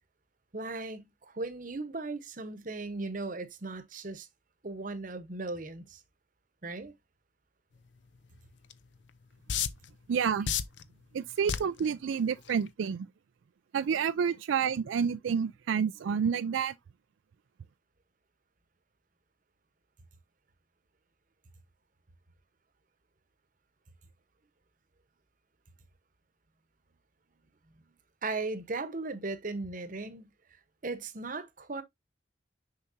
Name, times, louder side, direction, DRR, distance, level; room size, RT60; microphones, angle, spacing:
voice 1, 0.5-4.3 4.6-6.0 6.6-6.9 28.2-30.3 30.8-31.8, right 3 dB, 45° right, 0.9 m, -37 dB
sound 1, 8.7-8.8 9.5-9.9 10.5-10.8 11.5-11.8 12.5-12.7, left 8 dB, 70° left, 0.6 m, -29 dB
voice 2, 10.1-10.5 11.1-13.1 13.7-16.7, right 7 dB, 80° right, 0.4 m, -29 dB
6.6 x 5.7 x 2.6 m
head